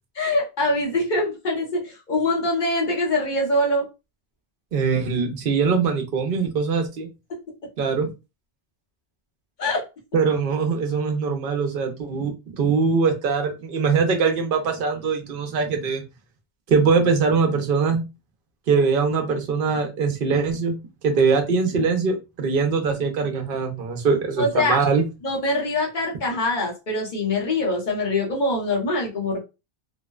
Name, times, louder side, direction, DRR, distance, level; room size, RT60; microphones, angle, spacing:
voice 1, 0.1-3.8 9.6-9.8 24.4-24.8 25.2-29.4, left 2 dB, 50° left, -1 dB, 1.0 m, -23 dB
voice 2, 4.7-7.1 7.8-8.1 10.1-16.0 16.7-18.0 18.7-20.7 21.0-25.0, right 5 dB, 65° right, 4 dB, 0.7 m, -22 dB
2.6 x 2.0 x 2.2 m, 0.27 s
omnidirectional pair, 1.0 m